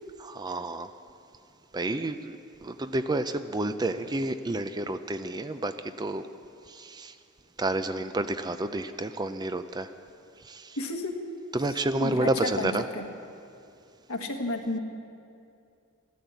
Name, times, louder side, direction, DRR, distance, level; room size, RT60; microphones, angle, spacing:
voice 1, 0.2-0.9 1.7-2.3 2.6-6.3 6.7-7.1 7.6-9.9 10.4-10.8 11.5-12.8, right 2 dB, 20° right, 10 dB, 0.4 m, -30 dB
voice 2, 10.8-11.3 12.0-13.0 14.1-14.8, left 2 dB, 80° left, 3 dB, 1.5 m, -32 dB
13.0 x 12.5 x 8.3 m, 2.5 s
head